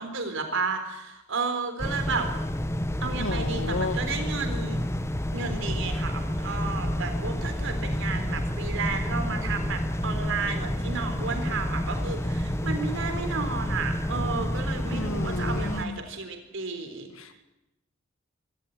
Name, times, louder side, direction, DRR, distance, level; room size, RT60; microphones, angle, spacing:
voice 1, 0.0-2.3 3.0-4.8 5.3-17.1, right 4 dB, 65° right, 7 dB, 3.9 m, -32 dB
sound 1, 1.8-15.8, equal, 15° left, 1.2 m, -29 dB
voice 2, 3.2-4.0 14.9-16.0 17.1-17.4, left 3 dB, 75° left, 9 dB, 2.1 m, -32 dB
24.0 x 14.5 x 9.4 m, 0.93 s
head